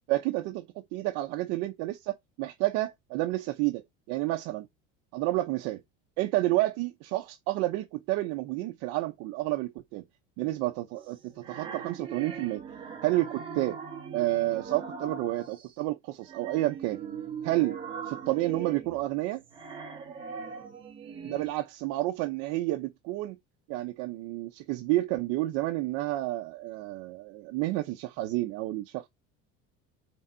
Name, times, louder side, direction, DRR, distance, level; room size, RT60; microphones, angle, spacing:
voice 1, 0.1-0.7 0.9-4.7 5.1-5.8 6.2-10.0 10.4-12.6 13.0-13.8 14.1-17.0 17.4-17.8 18.0-19.4 21.3-23.4 23.7-29.1, right 17 dB, 50° right, 0.7 m, -30 dB
sound 1, 10.9-15.7 16.2-21.5, right 6 dB, 15° right, 1.2 m, -41 dB
6.3 x 3.7 x 4.4 m
cardioid pair, 175°, 31 cm